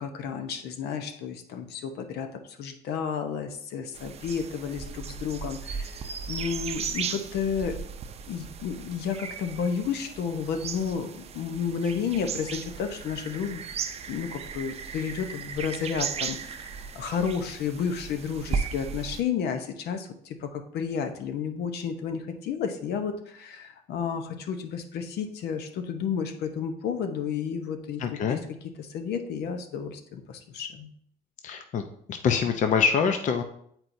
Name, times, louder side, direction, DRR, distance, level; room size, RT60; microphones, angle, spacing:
voice 1, 0.0-7.8 8.3-13.6 14.1-28.0 28.3-28.4 28.8-30.9, left 6 dB, 75° left, 7 dB, 0.8 m, -32 dB
sound 1, 3.9-19.2, right 6 dB, 40° right, 0.5 m, -36 dB
voice 2, 28.0-28.4 31.4-31.8 32.1-33.4, left 6 dB, 45° left, 6 dB, 0.6 m, -25 dB
9.5 x 4.4 x 2.6 m, 0.67 s
cardioid pair, 110°, 17 cm